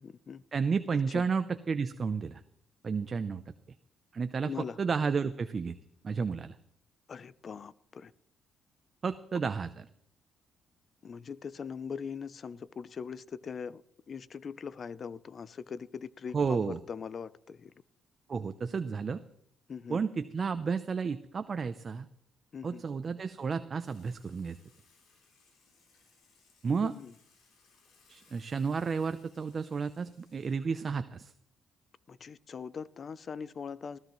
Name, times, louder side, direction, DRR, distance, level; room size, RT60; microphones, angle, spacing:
voice 1, 0.0-0.4 1.1-1.3 4.4-4.8 7.1-8.1 11.0-13.8 14.1-17.7 19.7-20.0 22.5-22.8 26.8-27.1 32.1-34.0, left 6 dB, 45° left, 18 dB, 0.6 m, -41 dB
voice 2, 0.5-2.4 2.8-3.4 4.1-4.5 4.8-5.8 6.0-6.5 9.0-9.8 16.3-16.8 18.3-19.2 19.9-22.1 22.6-24.6 26.6-26.9 28.1-31.3, right 5 dB, 40° right, 11 dB, 0.6 m, -32 dB
Water / Water tap faucet / Sink (filling or washing), 23.8-30.6, left 4 dB, 80° left, 6.3 m, -66 dB
20.0 x 14.0 x 3.1 m, 0.70 s
cardioid pair, 90°, 0 cm